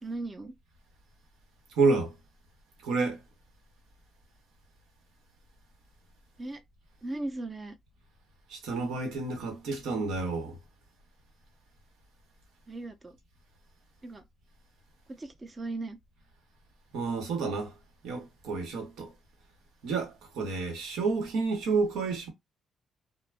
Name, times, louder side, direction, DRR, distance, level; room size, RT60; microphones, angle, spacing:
voice 1, 0.0-0.5 6.4-6.6 7.0-7.8 12.7-13.2 14.0-14.2 15.1-16.0, right 2 dB, 25° right, 0.6 m, -37 dB
voice 2, 1.7-2.1 2.8-3.2 8.5-10.6 16.9-17.8 18.0-19.1 19.8-22.3, right 4 dB, 85° right, 1.0 m, -29 dB
2.3 x 2.1 x 3.2 m
cardioid pair, 90°, 0 cm